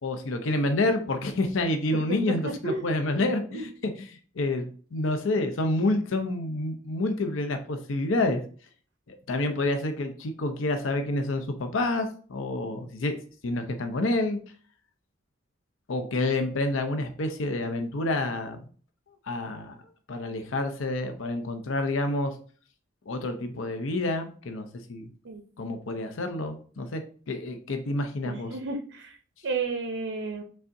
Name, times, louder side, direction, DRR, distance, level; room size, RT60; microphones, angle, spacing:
voice 1, 0.0-3.7 3.9-8.4 9.1-13.2 13.4-14.4 15.9-18.6 19.3-19.8 20.1-22.4 23.1-25.1 25.6-28.5, left 2 dB, 90° left, 7 dB, 0.6 m, -28 dB
voice 2, 2.1-2.9 3.2-3.3 3.5-3.7 25.2-25.4 28.2-29.2 29.4-30.4, right 3 dB, 85° right, 4 dB, 0.6 m, -32 dB
5.4 x 3.6 x 2.6 m, 0.42 s
head